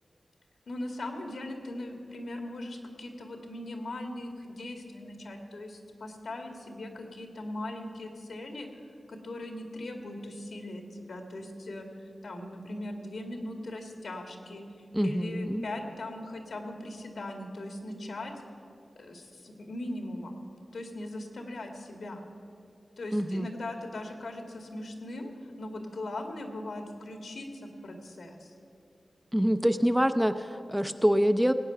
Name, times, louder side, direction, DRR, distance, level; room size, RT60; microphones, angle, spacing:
voice 1, 0.7-18.3 19.0-20.4 20.7-22.3 23.0-28.5, left 1 dB, 80° left, 4 dB, 1.9 m, -39 dB
voice 2, 14.9-15.7 23.1-23.5 29.3-31.5, equal, 5° right, 9 dB, 0.5 m, -25 dB
18.0 x 8.9 x 6.7 m, 2.6 s
wide cardioid pair, 100°, 0 cm